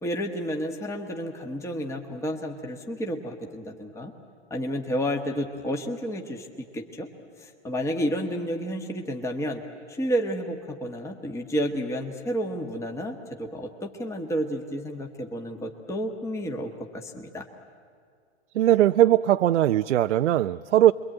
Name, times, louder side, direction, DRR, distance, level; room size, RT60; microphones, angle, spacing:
voice 1, 0.0-4.1 4.5-7.1 7.4-9.6 9.9-17.5, equal, 10° left, 2 dB, 1.4 m, -31 dB
voice 2, 18.5-20.9, right 12 dB, 80° right, 9 dB, 0.6 m, -20 dB
28.0 x 22.5 x 9.0 m, 2.2 s
hypercardioid pair, 135°, 35 cm